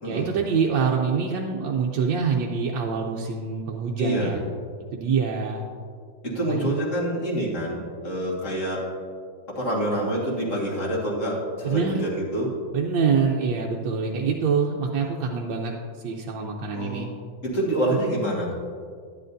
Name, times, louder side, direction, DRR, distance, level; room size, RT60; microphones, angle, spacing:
voice 1, 0.0-4.4 4.9-5.6 6.5-6.7 11.6-12.0 12.7-15.7 16.0-17.1, right 5 dB, 75° right, -1 dB, 1.3 m, -25 dB
voice 2, 4.0-4.3 6.2-8.8 9.5-12.5 16.7-17.1 17.4-18.5, right 1 dB, 40° left, -5 dB, 2.0 m, -26 dB
11.0 x 9.9 x 2.6 m, 2.1 s
omnidirectional pair, 2.1 m